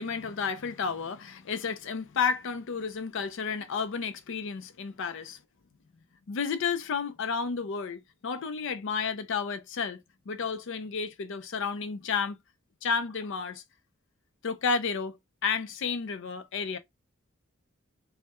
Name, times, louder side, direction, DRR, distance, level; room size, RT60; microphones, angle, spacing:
voice 1, 0.0-5.4 6.3-10.0 10.3-12.4 12.8-13.6 14.4-15.2 15.4-16.8, left 5 dB, 60° left, 0.5 m, -31 dB
3.2 x 2.1 x 2.9 m
head